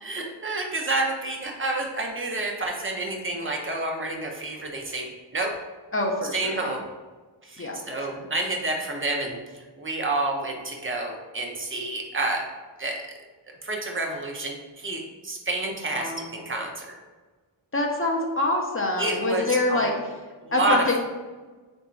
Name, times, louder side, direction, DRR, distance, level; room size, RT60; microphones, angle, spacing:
voice 1, 0.0-5.5 6.3-6.8 7.4-12.4 12.8-13.0 13.6-16.9 19.0-19.9 20.4-21.0, right 2 dB, 25° right, 1 dB, 0.8 m, -29 dB
voice 2, 5.9-6.7 7.6-8.1 15.9-16.3 17.7-19.9 20.5-21.0, left 2 dB, 25° left, 0 dB, 0.7 m, -26 dB
3.6 x 2.7 x 4.4 m, 1.3 s
wide cardioid pair, 70°, 47 cm